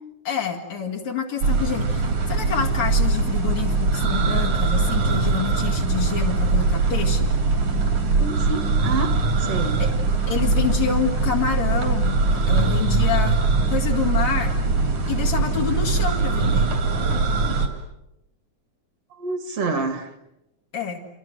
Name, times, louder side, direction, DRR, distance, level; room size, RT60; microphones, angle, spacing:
voice 1, 0.3-7.3 9.8-9.9 10.3-13.4 13.7-14.5 15.1-16.7 20.7-21.0, left 7 dB, 70° left, 0 dB, 3.6 m, -27 dB
sound 1, 1.4-17.7, right 3 dB, 70° right, 4.7 m, -21 dB
voice 2, 8.2-9.8 19.2-20.1, right 3 dB, 55° right, 8 dB, 3.0 m, -28 dB
30.0 x 26.0 x 7.6 m, 0.90 s
omnidirectional pair, 3.4 m